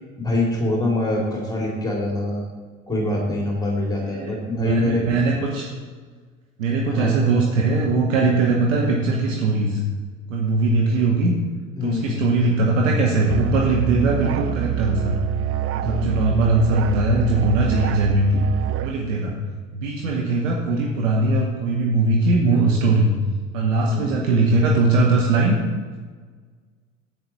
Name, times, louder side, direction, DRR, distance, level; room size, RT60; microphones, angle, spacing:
voice 1, 0.2-2.5 2.9-5.0 6.9-7.2 11.8-12.2 15.8-16.2 23.9-24.2, left 2 dB, 10° left, -2 dB, 2.7 m, -24 dB
voice 2, 4.1-5.7 6.6-9.8 10.3-11.3 11.8-15.2 15.7-18.4 18.8-19.3 19.7-23.1 23.5-25.6, right 2 dB, 70° right, -1 dB, 1.4 m, -20 dB
Musical instrument, 13.3-19.0, right 11 dB, 35° right, 0.6 m, -26 dB
10.5 x 8.6 x 4.2 m, 1.5 s
figure-of-eight pair, 65°, 39 cm